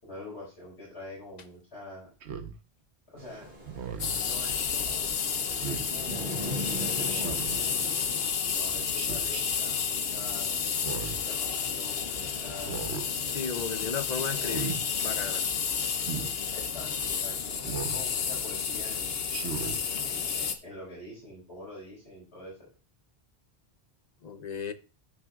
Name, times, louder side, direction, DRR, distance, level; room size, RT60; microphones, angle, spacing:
voice 1, 0.0-2.1 3.1-3.5 4.2-5.1 5.5-7.7 8.5-10.6 11.2-12.9 14.2-14.6 16.5-19.1 20.0-22.6, left 1 dB, 85° left, 4.8 m, -45 dB
Speech synthesizer, 2.2-2.5 3.6-4.2 5.6-5.9 7.1-7.6 8.9-9.4 10.7-11.3 12.6-13.1 14.4-14.8 16.0-16.3 17.6-18.0 19.3-19.8, right 7 dB, 90° right, 1.3 m, -36 dB
sound 1, 3.2-8.3, right 1 dB, 65° right, 2.5 m, -40 dB
sound 2, 4.0-20.5, left 6 dB, 65° left, 1.1 m, -31 dB
voice 2, 13.3-14.8 15.0-15.5 24.2-24.7, left 6 dB, 45° left, 0.8 m, -34 dB
13.5 x 6.1 x 2.4 m
omnidirectional pair, 1.1 m